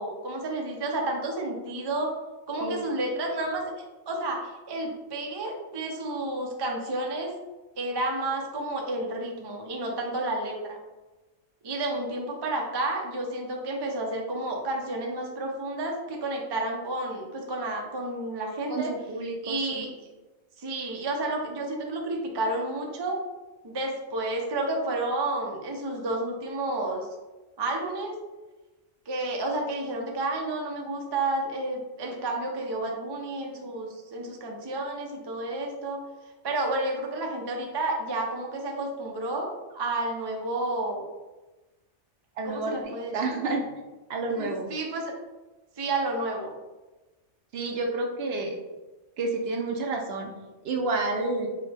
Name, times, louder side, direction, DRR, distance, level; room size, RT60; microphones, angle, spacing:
voice 1, 0.0-2.1 2.5-3.6 4.1-7.3 7.8-10.8 11.6-18.9 19.4-19.9 20.6-23.2 23.6-27.1 27.6-28.1 29.1-36.0 36.4-41.0 42.4-43.4 44.4-45.1 45.8-46.5, right 2 dB, 35° right, 1 dB, 0.4 m, -31 dB
voice 2, 18.7-19.9 42.4-43.7 44.1-44.7 47.5-48.5 49.2-50.3 50.6-51.5, right 3 dB, 65° right, 2 dB, 0.7 m, -30 dB
5.8 x 2.1 x 3.3 m, 1.1 s
omnidirectional pair, 1.2 m